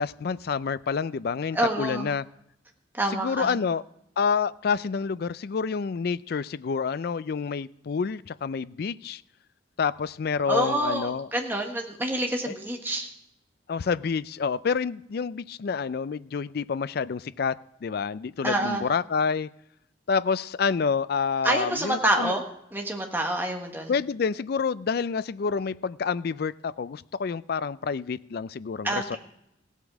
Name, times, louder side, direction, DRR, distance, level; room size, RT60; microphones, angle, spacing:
voice 1, 0.0-2.2 3.1-3.8 4.2-9.2 9.8-11.3 12.5-12.6 13.7-19.5 20.1-22.3 23.9-29.2, left 5 dB, 55° left, 17 dB, 0.4 m, -28 dB
voice 2, 1.5-2.1 2.9-3.6 10.5-13.1 18.4-18.8 21.4-22.4 22.7-23.9 28.8-29.2, right 1 dB, 10° right, 2 dB, 1.5 m, -27 dB
16.0 x 8.1 x 6.1 m, 0.79 s
head